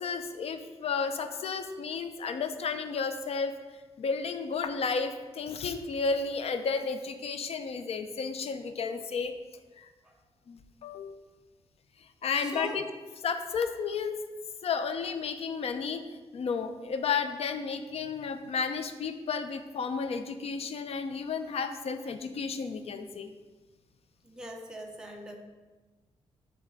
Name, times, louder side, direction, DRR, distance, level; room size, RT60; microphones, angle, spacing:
voice 1, 0.0-3.5 4.0-9.3 9.8-9.9 10.5-11.2 12.0-12.8 13.2-14.2 14.6-16.0 16.3-23.3, left 5 dB, 65° left, 9 dB, 0.7 m, -32 dB
voice 2, 12.3-12.8 24.2-25.4, equal, 5° right, 1 dB, 0.9 m, -41 dB
8.4 x 3.5 x 6.4 m, 1.3 s
cardioid pair, 105°, 11 cm